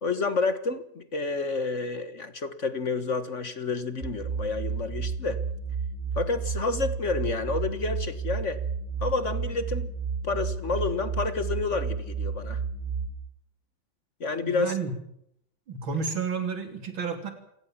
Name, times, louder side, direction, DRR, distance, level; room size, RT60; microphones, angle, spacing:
voice 1, 0.0-5.4 6.1-8.6 9.0-9.9 10.2-12.6 14.2-14.7, left 3 dB, 40° left, 12 dB, 1.6 m, -29 dB
sound 1, 4.0-13.1, right 5 dB, 25° right, 6.6 m, -32 dB
voice 2, 14.5-14.9 15.7-17.3, right 5 dB, 85° right, 6 dB, 4.1 m, -31 dB
28.0 x 17.0 x 7.4 m, 0.75 s
omnidirectional pair, 2.1 m